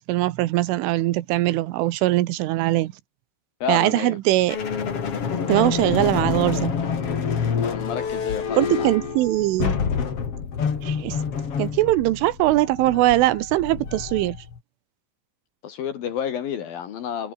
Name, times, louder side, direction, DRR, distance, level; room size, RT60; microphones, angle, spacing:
voice 1, 0.1-2.9 3.7-4.6 5.5-6.7 8.6-9.8 10.8-11.2 11.6-14.4, right 16 dB, 80° right, 3.5 m, -21 dB
voice 2, 3.6-4.2 7.6-8.9 15.6-17.3, left 8 dB, 60° left, 2.9 m, -30 dB
sound 1, 4.5-14.6, left 6 dB, 40° left, 2.7 m, -27 dB
omnidirectional pair, 5.7 m